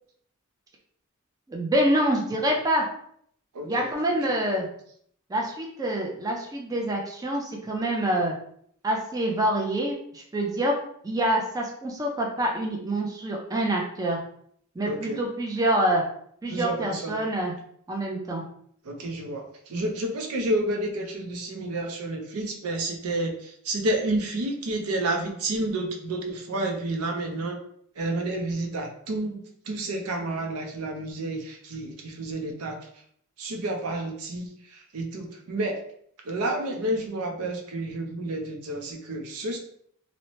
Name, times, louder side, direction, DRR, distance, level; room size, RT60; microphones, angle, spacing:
voice 1, 1.5-2.9 3.6-4.7 5.3-8.3 8.8-10.7 11.0-14.2 14.8-16.0 16.4-17.5 17.9-18.4, right 1 dB, 15° right, -1 dB, 0.4 m, -26 dB
voice 2, 3.5-3.9 4.2-4.4 14.8-15.2 16.5-17.2 18.8-27.6 27.9-29.4 29.6-33.0 33.4-35.8 36.2-39.6, right 1 dB, 80° right, 3 dB, 0.5 m, -30 dB
2.7 x 2.0 x 3.0 m, 0.65 s
head